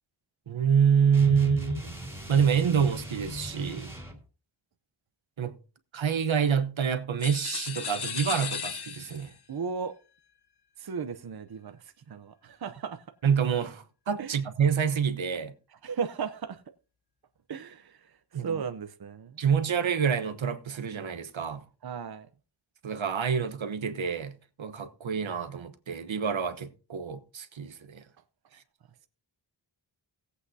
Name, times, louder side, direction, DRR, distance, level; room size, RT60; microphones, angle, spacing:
voice 1, 0.5-1.9 2.3-3.9 5.4-5.5 5.9-9.3 13.2-15.5 18.3-18.6 19.4-21.6 22.8-28.0, right 7 dB, 80° right, 1.1 m, -27 dB
sound 1, 1.1-4.2, equal, 5° right, 2.8 m, -37 dB
sound 2, 7.2-9.4, left 7 dB, 55° left, 0.9 m, -35 dB
voice 2, 9.5-9.9 10.8-13.1 14.2-14.4 15.7-16.6 17.5-19.4 21.8-22.3, right 6 dB, 55° right, 0.8 m, -36 dB
18.0 x 8.2 x 2.7 m
wide cardioid pair, 105°, 46 cm